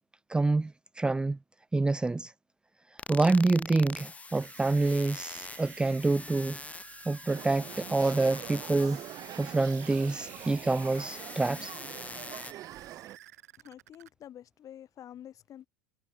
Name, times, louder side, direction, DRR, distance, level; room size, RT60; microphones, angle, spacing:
voice 1, 0.3-1.4 1.7-2.3 3.1-6.6 7.1-9.0 9.4-11.7, right 3 dB, 10° right, 0.6 m, -27 dB
sound 1, 3.0-12.5, left 4 dB, 15° left, 1.4 m, -44 dB
sound 2, 4.3-14.1, right 14 dB, 75° right, 5.1 m, -53 dB
sound 3, 7.3-13.2, right 13 dB, 45° right, 1.9 m, -44 dB
voice 2, 13.6-15.7, left 10 dB, 40° left, 5.4 m, -48 dB
hypercardioid pair, 80°, 9 cm